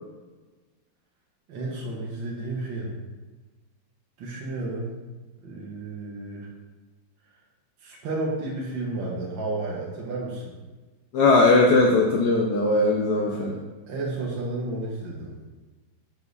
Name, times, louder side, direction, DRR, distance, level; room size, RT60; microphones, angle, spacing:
voice 1, 1.5-2.9 4.2-4.9 5.4-6.5 7.8-10.6 13.2-13.6 13.9-15.3, right 2 dB, 75° right, -3 dB, 1.9 m, -32 dB
voice 2, 11.1-13.6, left 2 dB, 65° left, 0 dB, 1.1 m, -19 dB
6.6 x 5.1 x 3.9 m, 1.3 s
omnidirectional pair, 2.1 m